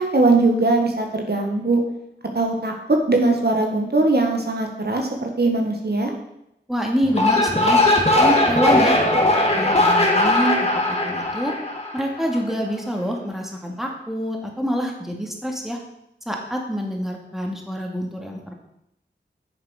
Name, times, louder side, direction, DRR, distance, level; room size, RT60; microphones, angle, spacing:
voice 1, 0.0-1.8 2.3-6.1, right 2 dB, 60° right, 2 dB, 1.8 m, -20 dB
voice 2, 6.7-7.8 8.2-9.0 9.4-10.6 10.9-11.5 11.9-15.8 16.3-18.5, equal, ahead, 1 dB, 2.3 m, -26 dB
sound 1, 7.0-12.4, left 1 dB, 35° left, 2.3 m, -19 dB
9.0 x 7.2 x 6.5 m, 0.82 s
wide cardioid pair, 50°, 19 cm